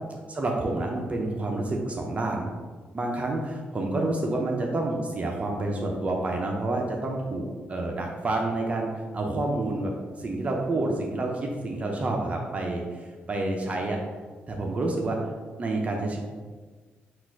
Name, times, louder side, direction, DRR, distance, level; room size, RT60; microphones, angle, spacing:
voice 1, 0.3-2.5 2.9-9.9 10.2-14.0 14.5-15.3 15.6-16.2, right 2 dB, 35° right, 0 dB, 0.6 m, -28 dB
4.0 x 2.4 x 4.6 m, 1.4 s
cardioid pair, 90°, 4 cm